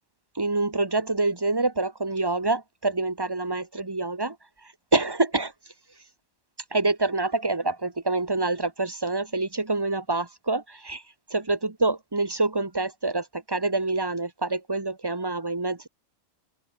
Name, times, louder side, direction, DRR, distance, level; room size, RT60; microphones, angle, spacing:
voice 1, 0.3-4.3 4.9-5.5 6.7-11.0 11.3-15.9, right 2 dB, 20° right, 1.7 m, -26 dB
open air
omnidirectional pair, 1.3 m